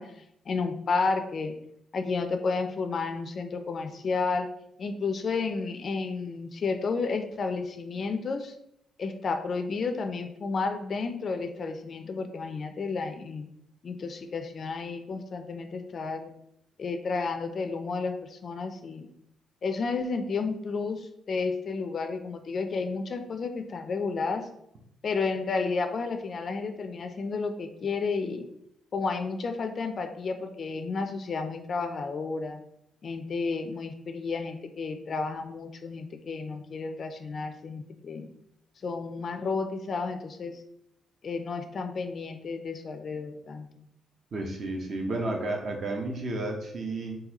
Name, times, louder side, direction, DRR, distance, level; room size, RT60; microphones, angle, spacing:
voice 1, 0.0-1.6 1.9-4.5 4.8-8.5 9.0-13.5 13.8-16.3 16.8-19.1 19.6-24.5 25.0-28.5 28.9-32.6 33.0-38.3 38.8-40.6 41.2-43.9, left 4 dB, 50° left, 7 dB, 0.3 m, -31 dB
voice 2, 44.3-47.2, right 2 dB, 50° right, 2 dB, 0.7 m, -32 dB
3.8 x 2.6 x 2.9 m, 0.76 s
cardioid pair, 90°, 0 cm